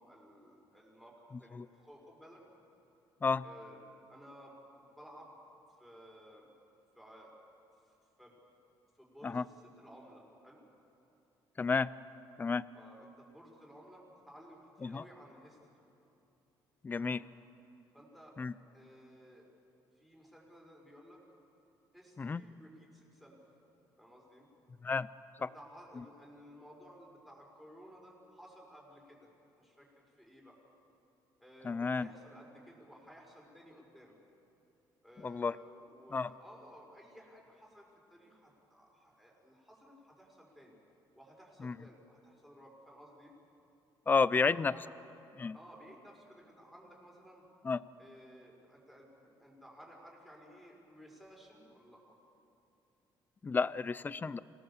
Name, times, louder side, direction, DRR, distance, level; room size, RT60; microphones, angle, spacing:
voice 1, 0.0-2.4 3.4-5.4 5.8-6.5 6.9-7.3 7.9-8.4 8.9-10.6 12.7-15.6 16.9-17.2 17.9-18.4 18.7-19.5 20.0-21.2 21.9-23.4 24.0-24.5 25.4-29.3 29.6-30.6 31.4-34.2 35.0-40.8 41.2-43.3 44.3-45.1 45.5-47.4 48.0-52.1, equal, ahead, -2 dB, 5.4 m, -56 dB
voice 2, 11.6-11.9 12.4-12.6 14.8-15.0 16.8-17.2 18.4-18.5 22.2-22.4 24.8-25.1 31.6-32.1 35.2-35.5 36.1-36.3 41.6-41.7 44.1-44.7 45.4-45.5 47.6-47.8 53.4-54.4, left 4 dB, 25° left, 18 dB, 0.5 m, -31 dB
26.5 x 18.0 x 7.2 m, 2.8 s
cardioid pair, 125°, 8 cm